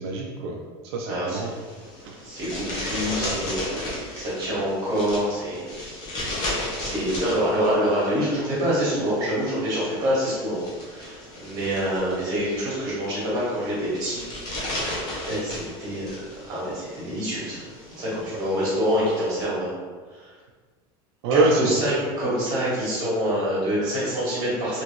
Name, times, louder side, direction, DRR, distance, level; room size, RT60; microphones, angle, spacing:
voice 1, 0.0-1.5 2.0-2.2 18.3-18.4 21.2-21.8, right 3 dB, 85° right, 0 dB, 0.4 m, -25 dB
voice 2, 1.1-1.4 2.2-6.0 6.8-14.2 14.6-14.7 15.3-17.6 18.0-19.7 20.1-20.3 21.3-24.8, equal, 30° right, -7 dB, 1.4 m, -26 dB
sound 1, 1.2-19.4, left 1 dB, 35° left, 0.8 m, -35 dB
3.0 x 2.6 x 3.0 m, 1.5 s
supercardioid pair, 170°, 13 cm